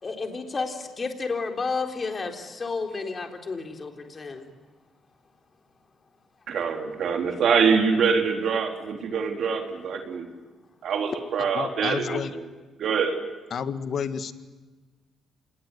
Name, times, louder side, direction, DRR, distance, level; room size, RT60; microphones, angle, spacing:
voice 1, 0.0-4.5, left 4 dB, 35° left, 4 dB, 4.0 m, -31 dB
voice 2, 6.5-10.3 10.8-12.4 12.8-13.2, right 6 dB, 65° right, 3 dB, 3.8 m, -24 dB
voice 3, 11.4-12.3 13.5-14.3, left 7 dB, 60° left, 10 dB, 1.8 m, -30 dB
27.0 x 20.5 x 9.7 m, 1.3 s
cardioid pair, 90°, 0 cm